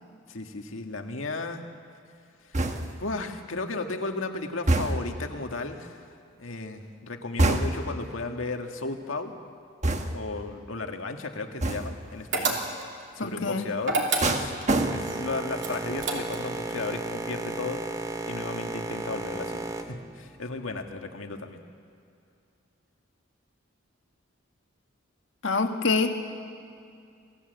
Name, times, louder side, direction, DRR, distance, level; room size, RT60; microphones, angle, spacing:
voice 1, 0.3-1.6 2.4-2.6 3.0-6.1 6.4-9.3 10.1-12.6 13.2-14.5 14.9-21.6, left 3 dB, 85° left, 4 dB, 1.8 m, -35 dB
sound 1, 2.5-3.1 4.7-5.2 7.4-8.0 9.8-10.4 11.6-12.1 14.2-15.3 15.7-16.1, right 2 dB, 35° right, 1.4 m, -26 dB
sound 2, 12.3-13.0 13.8-14.7 15.6-16.6, right 3 dB, 65° right, 2.9 m, -28 dB
voice 2, 13.2-13.7 25.4-26.1, left 4 dB, 70° left, 4 dB, 1.7 m, -25 dB
Boat Water vehicle, 14.7-21.0, right 2 dB, 15° right, 0.9 m, -35 dB
27.0 x 17.0 x 8.0 m, 2.4 s
head